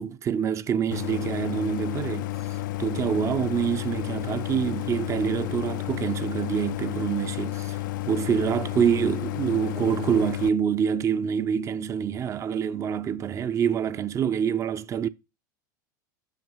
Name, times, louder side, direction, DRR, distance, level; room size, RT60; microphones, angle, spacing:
voice 1, 0.0-2.3 2.8-7.8 8.1-15.1, right 8 dB, 30° right, 0.5 m, -26 dB
Idling, 0.9-10.5, left 16 dB, 75° left, 0.4 m, -31 dB
5.7 x 5.1 x 5.3 m
hypercardioid pair, 105°, 11 cm